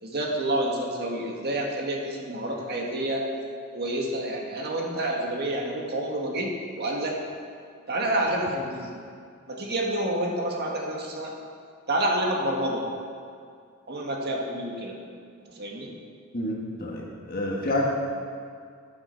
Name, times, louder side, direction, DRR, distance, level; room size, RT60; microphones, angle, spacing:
voice 1, 0.0-3.3 3.7-7.2 7.9-9.0 9.5-11.3 11.9-12.8 13.9-15.0 15.5-15.9, right 1 dB, 50° right, -1 dB, 1.8 m, -28 dB
voice 2, 16.3-17.8, left 1 dB, 45° left, -2 dB, 1.4 m, -29 dB
13.0 x 8.9 x 4.5 m, 2.2 s
head